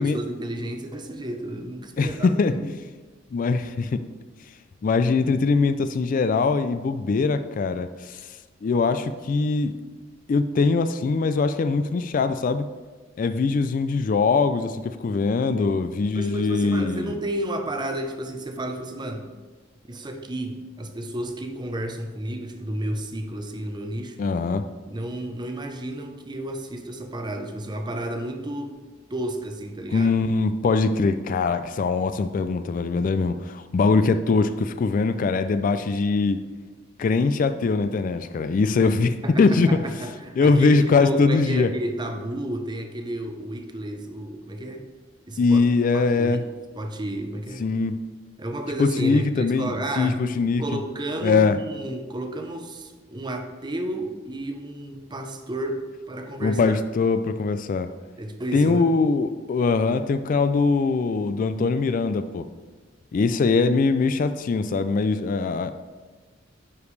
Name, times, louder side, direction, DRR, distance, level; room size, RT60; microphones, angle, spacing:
voice 1, 0.0-2.6 15.5-15.7 16.1-19.3 19.8-24.2 24.9-28.8 29.1-30.1 39.2-44.8 45.3-45.6 45.9-46.5 46.7-47.6 48.4-50.2 50.6-56.8 58.2-58.9, right 1 dB, 25° right, 5 dB, 0.7 m, -32 dB
voice 2, 2.0-2.7 3.3-4.0 4.8-8.2 8.6-9.8 10.3-12.7 13.2-17.1 24.2-24.6 29.9-36.4 37.0-39.7 40.4-41.7 45.4-46.4 47.6-47.9 48.8-49.7 50.0-50.6 51.2-51.6 56.4-57.9 58.5-62.4 63.1-65.7, left 4 dB, 45° left, 11 dB, 0.3 m, -22 dB
9.8 x 5.1 x 3.2 m, 1.3 s
head